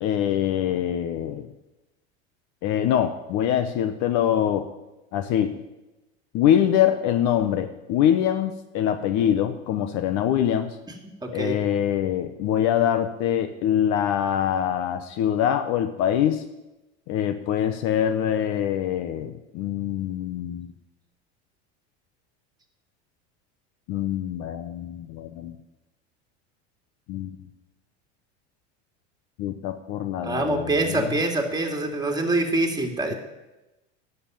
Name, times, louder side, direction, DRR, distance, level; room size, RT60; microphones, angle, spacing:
voice 1, 0.0-1.5 2.6-4.7 5.1-5.5 6.3-10.8 11.3-16.4 17.1-20.7 23.9-25.6 27.1-27.3 29.4-31.1, left 10 dB, 55° left, 9 dB, 1.0 m, -24 dB
voice 2, 11.2-11.6 30.2-33.2, right 2 dB, 10° right, 2 dB, 2.3 m, -25 dB
11.0 x 6.9 x 9.1 m, 1.0 s
supercardioid pair, 100°, 33 cm